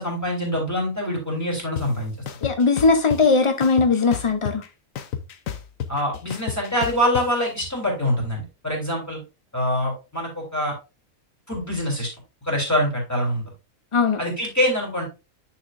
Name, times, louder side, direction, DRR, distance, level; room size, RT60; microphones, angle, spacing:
voice 1, 0.0-2.1 5.9-9.2 9.5-10.7 11.5-12.1 12.4-13.4 14.2-15.0, equal, 10° left, 3.2 m, -24 dB
sound 1, 1.8-1.9 2.3-3.2 3.6-4.7 5.0-7.2, left 8 dB, 70° left, 1.2 m, -30 dB
voice 2, 2.4-4.6 13.9-14.2, left 4 dB, 50° left, 0.3 m, -19 dB
9.6 x 5.7 x 2.5 m
omnidirectional pair, 1.5 m